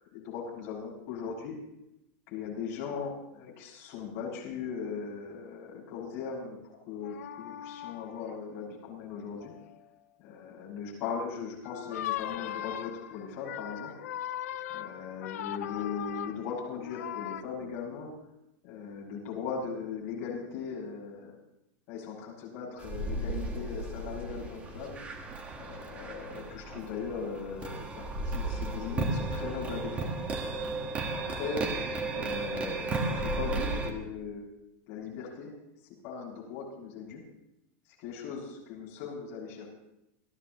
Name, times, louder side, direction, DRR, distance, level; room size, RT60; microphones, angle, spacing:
voice 1, 0.0-1.6 2.3-9.5 10.2-14.0 14.7-18.1 18.6-21.4 21.9-25.0 25.5-30.2 31.1-31.7 32.1-34.4 34.9-35.5 36.0-37.2 38.0-39.7, left 6 dB, 35° left, -5 dB, 6.4 m, -39 dB
sound 1, 7.0-8.3 9.4-9.7 11.6-17.4, left 12 dB, 80° left, 0.8 m, -39 dB
sound 2, 22.8-33.9, right 2 dB, 15° right, 1.4 m, -34 dB
29.5 x 13.0 x 3.0 m, 0.87 s
supercardioid pair, 180°, 8 cm